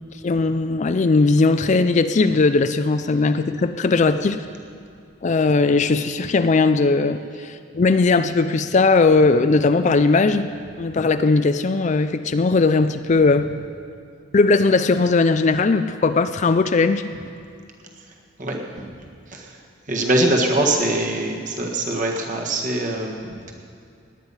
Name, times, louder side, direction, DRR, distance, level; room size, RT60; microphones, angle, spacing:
voice 1, 0.2-4.4 5.2-10.5 10.8-13.5 14.3-17.1, left 3 dB, 35° left, 10 dB, 0.4 m, -18 dB
voice 2, 19.9-23.5, right 1 dB, 40° right, 0 dB, 1.7 m, -22 dB
18.0 x 10.0 x 5.6 m, 2.4 s
head